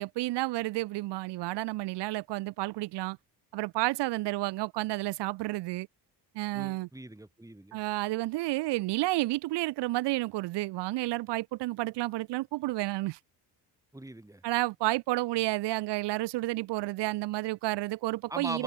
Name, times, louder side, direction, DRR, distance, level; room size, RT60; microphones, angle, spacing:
voice 1, 0.0-3.2 3.5-5.9 6.3-6.9 7.7-13.2 14.4-18.6, right 19 dB, 85° right, 0.6 m, -31 dB
voice 2, 6.5-7.8 13.9-14.4 18.3-18.6, right 1 dB, 10° right, 4.7 m, -40 dB
cardioid pair, 110°, 41 cm